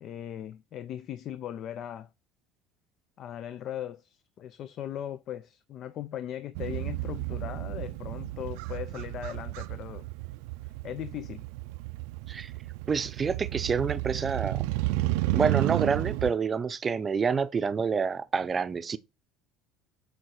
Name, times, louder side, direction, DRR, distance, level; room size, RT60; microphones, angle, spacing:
voice 1, 0.0-2.1 3.2-10.1 10.8-11.4, left 10 dB, 45° left, 0.5 m, -38 dB
Motorcycle, 6.5-16.3, right 18 dB, 80° right, 0.5 m, -32 dB
voice 2, 12.9-14.6 15.3-19.0, right 5 dB, 25° right, 0.6 m, -28 dB
7.8 x 4.5 x 4.3 m
cardioid pair, 125°, 0 cm